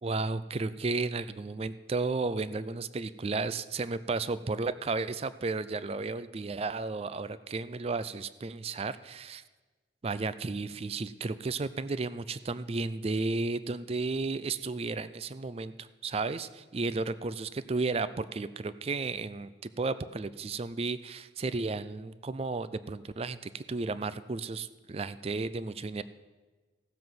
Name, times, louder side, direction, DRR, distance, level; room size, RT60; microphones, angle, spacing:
voice 1, 0.0-9.4 10.0-26.0, right 3 dB, 35° right, 15 dB, 0.4 m, -33 dB
15.5 x 7.4 x 6.0 m, 1.3 s
head